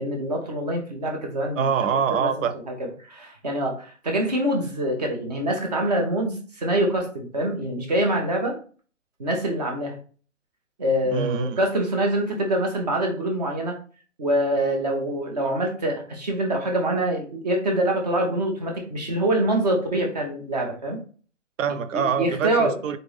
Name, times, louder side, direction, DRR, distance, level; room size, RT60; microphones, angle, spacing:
voice 1, 0.0-1.7 2.2-2.3 3.1-8.5 9.2-10.0 10.8-13.8 14.2-21.0 21.9-22.8, right 1 dB, 30° right, 0.9 m, -25 dB
voice 2, 1.6-2.5 11.1-11.6 21.6-23.0, right 6 dB, 85° right, 0.6 m, -25 dB
4.0 x 3.4 x 3.2 m
hypercardioid pair, 175°, 38 cm